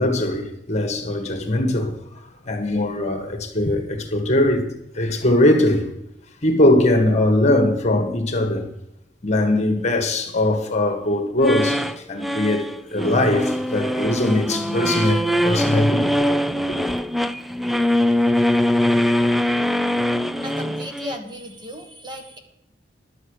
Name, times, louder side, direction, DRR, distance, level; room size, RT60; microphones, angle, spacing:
voice 1, 0.0-4.7 4.9-5.9 6.4-8.7 9.2-16.3 16.7-17.0, left 1 dB, 40° left, 1.7 m, -21 dB
sound 1, 11.4-21.2, equal, ahead, 0.3 m, -22 dB
voice 2, 20.4-22.4, equal, 25° right, 1.4 m, -35 dB
11.5 x 8.1 x 6.6 m
head